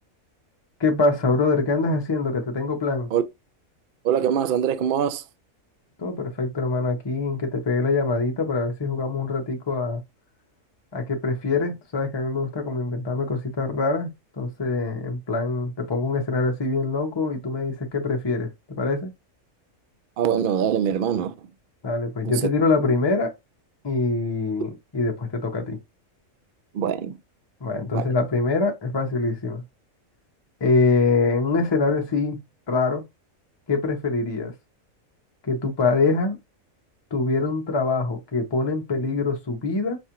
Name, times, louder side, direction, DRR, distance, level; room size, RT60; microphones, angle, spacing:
voice 1, 0.8-3.1 6.0-10.0 10.9-14.1 14.4-19.1 21.8-23.3 23.8-25.8 27.6-29.6 30.6-33.0 33.7-34.5 35.4-36.4 37.1-40.0, left 3 dB, 25° left, 0.7 m, -24 dB
voice 2, 4.0-5.2 20.2-21.3 22.2-22.3 26.7-27.2 27.9-28.1, right 9 dB, 65° right, 0.5 m, -23 dB
5.2 x 2.4 x 2.8 m
omnidirectional pair, 1.4 m